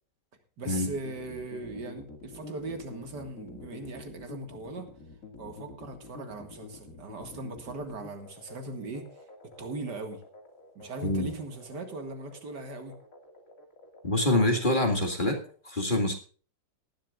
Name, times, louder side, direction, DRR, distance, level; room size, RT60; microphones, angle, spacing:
voice 1, 0.6-4.9 5.4-9.1 9.6-10.2 10.8-13.0, right 3 dB, 65° right, 6 dB, 2.5 m, -39 dB
sound 1, 0.7-15.5, left 3 dB, 45° left, 2.8 m, -48 dB
voice 2, 14.0-15.4 15.6-16.1, left 1 dB, 25° left, 2 dB, 2.1 m, -25 dB
19.0 x 11.5 x 2.5 m, 0.40 s
omnidirectional pair, 1.9 m